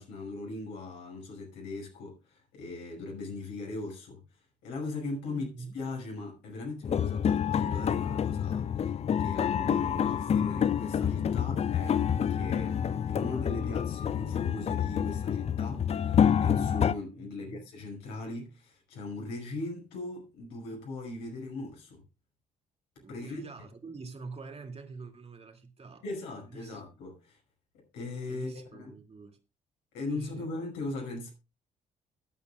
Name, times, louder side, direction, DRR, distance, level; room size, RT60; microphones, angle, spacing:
voice 1, 0.0-4.2 4.6-5.5 5.7-12.0 12.3-22.0 23.1-23.4 26.0-27.4 27.7-28.9 29.9-31.3, left 3 dB, 65° left, 5.7 m, -39 dB
voice 2, 5.3-5.7 17.2-17.6 23.0-26.0 26.4-26.8 28.3-29.4 30.1-30.5, right 4 dB, 30° right, 2.5 m, -45 dB
sound 1, 6.8-16.9, left 8 dB, 35° left, 0.5 m, -28 dB
22.0 x 8.3 x 2.4 m
figure-of-eight pair, 45°, 19 cm